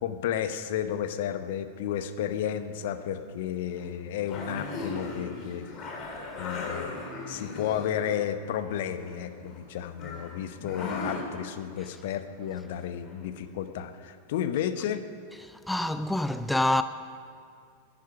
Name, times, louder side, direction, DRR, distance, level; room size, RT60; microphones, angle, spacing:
voice 1, 0.0-5.7 5.9-6.1 6.4-7.0 7.3-15.0, left 9 dB, 55° left, 0.9 m, -32 dB
sound 1, 2.6-2.9 3.8-3.9 4.2-8.1 8.4-9.6 10.0-11.2 13.0-13.1 13.6-13.7, left 3 dB, 30° left, 3.2 m, -38 dB
voice 2, 15.4-16.8, left 1 dB, 5° left, 0.4 m, -26 dB
11.5 x 10.5 x 9.6 m
figure-of-eight pair, 90°, 0 cm